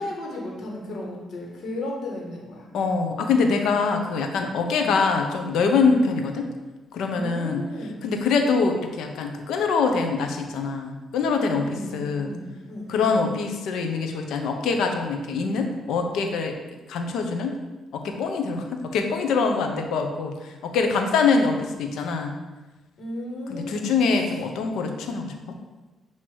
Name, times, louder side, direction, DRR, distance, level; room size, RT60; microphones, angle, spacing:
voice 1, 0.0-2.7 4.8-4.9 5.9-6.0 7.1-8.0 11.5-13.2 23.0-23.9, left 1 dB, 65° left, -2 dB, 1.6 m, -35 dB
voice 2, 2.7-6.5 6.9-7.6 8.0-12.3 12.9-16.6 16.9-17.6 17.9-22.3 23.5-25.3, left 4 dB, 85° left, 4 dB, 0.7 m, -24 dB
7.8 x 2.9 x 4.6 m, 1.2 s
cardioid pair, 90°, 0 cm